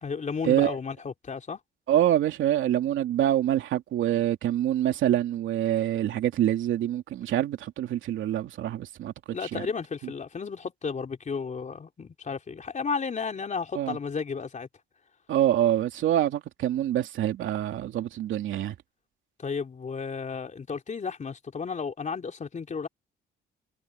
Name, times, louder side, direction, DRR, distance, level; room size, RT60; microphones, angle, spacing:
voice 1, 0.0-1.6 9.3-14.7 19.4-22.9, left 5 dB, 40° left, 3.4 m, -33 dB
voice 2, 1.9-9.1 9.5-9.6 13.7-14.0 15.3-18.8, right 12 dB, 80° right, 2.8 m, -25 dB
cardioid pair, 90°, 20 cm